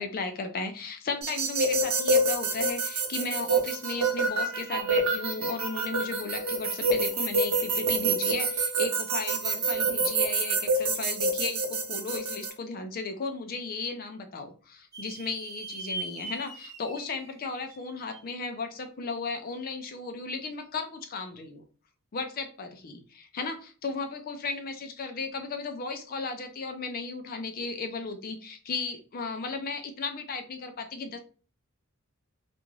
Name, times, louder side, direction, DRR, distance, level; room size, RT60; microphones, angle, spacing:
voice 1, 0.0-21.6 22.1-31.2, left 4 dB, 45° left, 6 dB, 0.4 m, -35 dB
sound 1, 1.2-12.5, right 2 dB, 75° right, 0.7 m, -27 dB
sound 2, 14.9-18.4, right 2 dB, 15° right, 0.6 m, -41 dB
2.5 x 2.3 x 3.1 m, 0.37 s
head